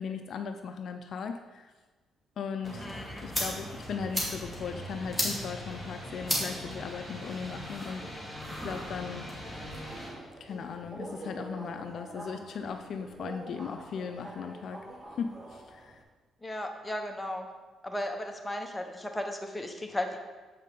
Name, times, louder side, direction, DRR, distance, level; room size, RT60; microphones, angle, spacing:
voice 1, 0.0-1.7 2.4-2.9 3.2-8.4 8.6-9.3 10.4-14.8 15.2-16.0, left 6 dB, 65° left, 7 dB, 0.4 m, -38 dB
sound 1, 2.6-10.1, equal, 5° right, 2.2 m, -36 dB
voice 2, 2.8-3.2 16.4-17.5 17.8-20.2, left 1 dB, 10° left, 3 dB, 0.9 m, -35 dB
Subway metro underground, 9.2-16.0, right 1 dB, 25° right, 1.0 m, -46 dB
7.4 x 5.5 x 3.8 m, 1.3 s
cardioid pair, 90°, 0 cm